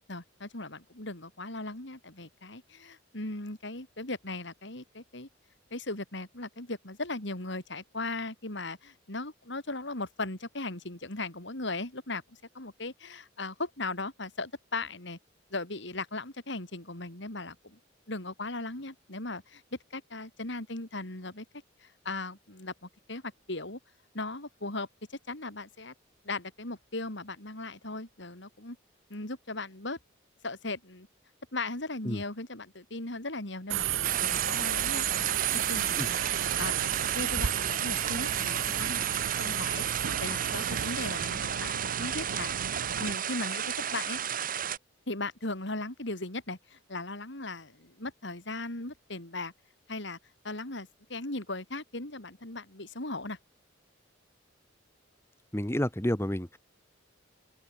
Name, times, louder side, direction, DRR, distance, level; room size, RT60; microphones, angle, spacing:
voice 1, 0.1-5.3 5.7-12.2 12.5-15.2 15.5-17.8 18.1-19.6 19.9-21.5 21.8-23.8 24.1-25.9 26.2-28.8 29.1-30.0 30.4-31.1 31.5-35.1 35.5-36.2 36.6-39.1 39.4-42.5 43.0-44.2 45.1-49.5 49.9-50.2 50.4-53.4, left 2 dB, 65° left, 4.0 m, -38 dB
Subway metro underground, 33.7-43.1, right 11 dB, 85° right, 0.5 m, -32 dB
sound 1, 34.0-44.8, right 8 dB, 45° right, 1.7 m, -33 dB
voice 2, 55.5-56.6, equal, 15° left, 2.0 m, -30 dB
open air
head